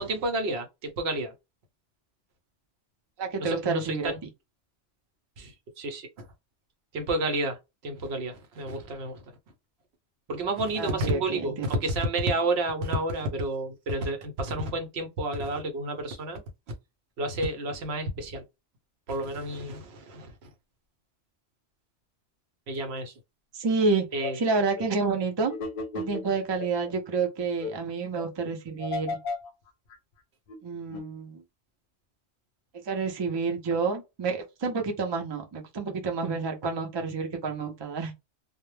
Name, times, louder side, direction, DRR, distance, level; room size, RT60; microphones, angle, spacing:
voice 1, 0.0-1.3 3.4-4.2 5.4-6.3 6.9-7.6 7.8-9.2 10.3-16.4 17.2-18.4 19.1-20.5 22.7-23.1 24.1-24.4, right 2 dB, 65° right, 0.8 m, -30 dB
voice 2, 3.2-4.1 10.8-11.7 23.5-24.0 24.3-25.5 25.9-29.2 30.6-31.4 32.8-38.2, right 4 dB, 45° right, 0.3 m, -29 dB
sound 1, 23.8-23.9 24.2-24.3 24.8-24.9 25.5-26.9 27.2-27.3 27.6-27.7 28.2-28.3 28.8-29.5 29.9-30.0 30.5-30.6 30.9-31.1, left 3 dB, 55° left, 0.7 m, -34 dB
2.1 x 2.0 x 3.1 m
omnidirectional pair, 1.2 m